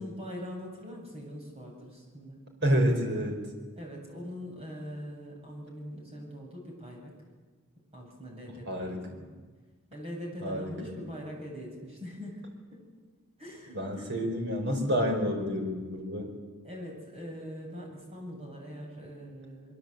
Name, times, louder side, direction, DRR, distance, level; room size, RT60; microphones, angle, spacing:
voice 1, 0.0-2.4 3.7-7.1 7.9-9.3 9.9-12.8 13.4-14.2 16.6-19.7, equal, 25° right, 0 dB, 8.0 m, -42 dB
voice 2, 2.6-3.4 8.7-9.0 10.4-11.0 13.7-16.3, equal, 50° right, 2 dB, 5.3 m, -29 dB
25.0 x 23.0 x 8.4 m, 1.4 s
head